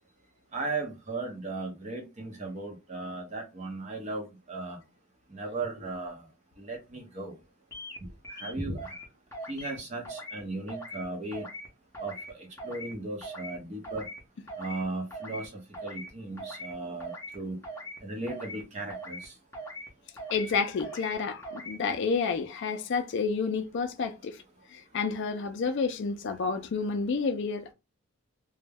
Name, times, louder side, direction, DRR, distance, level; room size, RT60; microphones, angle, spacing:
voice 1, 0.5-4.8 5.3-6.2 6.6-7.3 8.3-8.9 9.5-11.5 12.0-14.1 14.6-17.6 18.0-19.3, right 2 dB, 30° right, 0.6 m, -36 dB
sound 1, 7.7-8.0 8.2-9.0 9.3-9.8 10.0-10.4 10.7-11.0 11.3-11.7 11.9-12.3 12.6-12.9 13.2-13.6 13.8-14.2 14.5-14.8 15.1-15.5 15.7-16.1 16.4-16.7 17.0-17.4 17.6-18.0 18.3-18.6 18.9-19.3 19.5-19.9 20.2-20.5 20.8-21.1 21.4-21.8, right 1 dB, 10° left, 0.6 m, -41 dB
voice 2, 20.3-24.4 24.7-27.7, left 5 dB, 55° left, 0.4 m, -30 dB
2.2 x 2.0 x 3.3 m
head